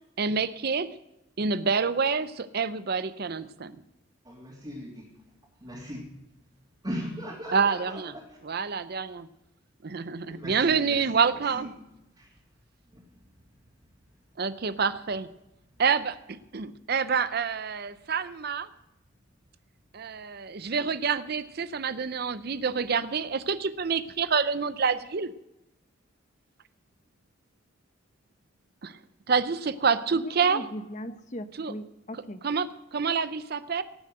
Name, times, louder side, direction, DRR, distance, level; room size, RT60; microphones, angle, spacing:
voice 1, 0.2-0.9 1.4-3.8 7.5-8.1 8.4-9.3 9.8-11.7 14.4-15.3 15.8-16.2 16.5-18.7 19.9-25.3 28.8-29.0 29.3-30.6 31.6-31.7 32.4-33.8, right 5 dB, 50° right, 14 dB, 0.6 m, -27 dB
voice 2, 4.2-5.0 5.6-6.0 6.8-8.2 10.4-11.7 12.2-12.3, equal, 20° right, -7 dB, 3.1 m, -38 dB
voice 3, 30.1-32.4, equal, 35° left, 11 dB, 0.9 m, -39 dB
18.0 x 7.3 x 7.8 m, 0.89 s
head